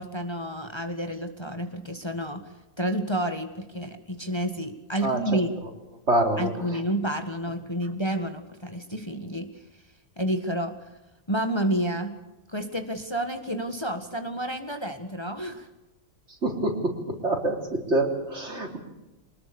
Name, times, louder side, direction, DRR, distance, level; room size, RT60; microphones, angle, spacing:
voice 1, 0.0-2.4 2.8-5.5 6.4-9.5 10.2-10.7 11.3-12.1 12.5-15.7, right 1 dB, 20° left, 7 dB, 1.7 m, -30 dB
voice 2, 5.0-5.4 6.1-6.5 16.4-16.7 17.1-17.6 17.9-18.8, right 1 dB, 55° right, 3 dB, 4.1 m, -25 dB
25.0 x 20.0 x 6.9 m, 1.0 s
omnidirectional pair, 1.4 m